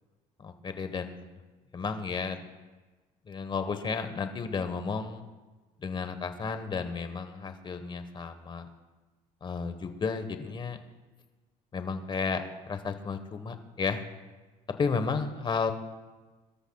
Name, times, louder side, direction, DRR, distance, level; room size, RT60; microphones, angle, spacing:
voice 1, 0.4-1.3 1.7-2.4 3.3-5.2 5.8-8.7 9.4-10.8 11.7-14.0 14.8-15.7, left 5 dB, 30° left, 8 dB, 1.3 m, -33 dB
24.5 x 13.0 x 2.4 m, 1.2 s
cardioid pair, 105°, 15 cm